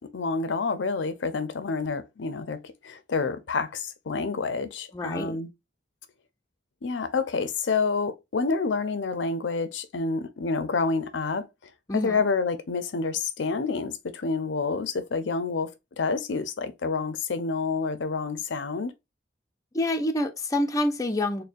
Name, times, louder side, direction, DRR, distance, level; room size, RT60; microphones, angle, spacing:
voice 1, 0.1-5.5 6.8-11.5 11.9-15.7 16.0-18.9, left 4 dB, 85° left, 0.6 m, -28 dB
voice 2, 4.9-5.4 11.9-12.2 19.7-21.4, left 1 dB, 20° left, 0.5 m, -27 dB
6.5 x 2.2 x 2.5 m
head